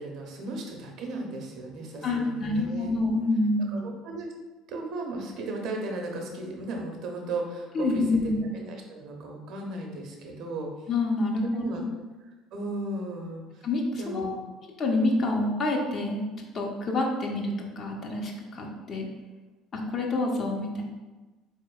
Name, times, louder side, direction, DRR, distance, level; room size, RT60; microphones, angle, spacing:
voice 1, 0.0-2.9 3.7-4.3 4.7-8.3 8.6-10.7 11.5-11.8 12.5-13.4 14.0-14.4, right 2 dB, 60° right, 1 dB, 0.6 m, -35 dB
voice 2, 2.0-3.8 7.7-8.4 10.9-11.8 13.6-14.4 14.8-19.1 19.7-20.8, left 2 dB, 40° left, 0 dB, 0.6 m, -27 dB
3.9 x 3.0 x 2.3 m, 1.2 s
hypercardioid pair, 65°, 0 cm